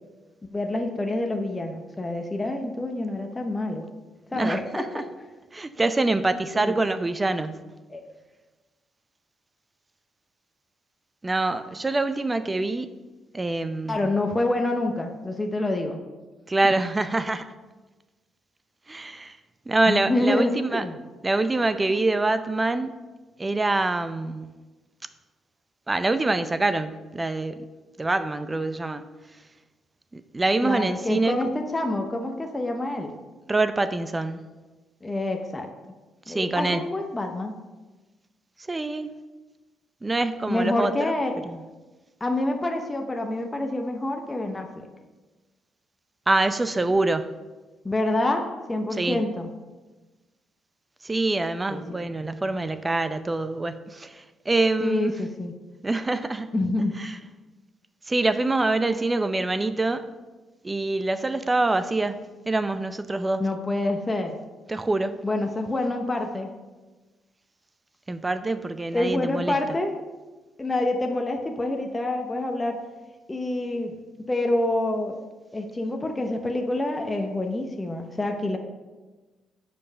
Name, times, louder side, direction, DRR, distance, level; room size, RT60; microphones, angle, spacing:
voice 1, 0.5-3.9 4.3-5.0 6.5-6.8 7.9-8.0 13.9-16.0 16.6-16.7 19.9-21.0 30.6-33.1 35.0-35.7 36.3-37.5 40.5-41.4 42.2-44.9 47.8-49.5 51.7-51.8 54.8-55.5 56.5-56.9 63.4-64.4 65.2-66.5 68.9-69.9 70.6-72.8 73.3-74.0 74.3-75.2 75.5-78.6, left 2 dB, 20° left, 3 dB, 0.7 m, -27 dB
voice 2, 4.3-5.0 5.5-7.7 11.2-12.9 13.3-14.1 16.5-17.5 18.9-19.4 19.7-20.9 21.2-23.0 23.4-24.5 25.9-27.7 28.0-29.0 30.1-31.4 33.5-34.4 36.3-36.8 38.7-39.2 40.0-41.1 41.4-41.6 46.3-47.4 48.9-49.2 51.0-55.1 55.8-56.5 57.0-57.2 58.1-60.1 60.6-62.2 62.5-63.5 64.7-65.2 68.1-69.6, right 2 dB, 20° right, 11 dB, 0.5 m, -25 dB
7.0 x 5.3 x 5.5 m, 1.2 s
cardioid pair, 90°, 0 cm